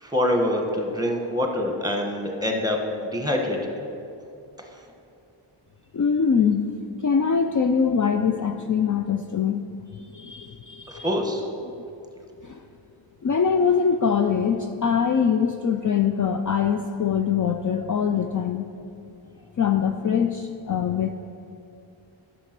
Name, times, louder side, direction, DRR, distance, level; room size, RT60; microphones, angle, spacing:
voice 1, 0.0-3.6 11.0-11.4, left 1 dB, 10° right, 2 dB, 1.2 m, -25 dB
voice 2, 5.9-6.7 7.0-9.7 10.1-11.1 12.4-12.6 13.2-18.7 19.6-21.1, left 6 dB, 40° left, 5 dB, 0.4 m, -23 dB
11.0 x 6.7 x 6.0 m, 2.6 s
wide cardioid pair, 95°, 50 cm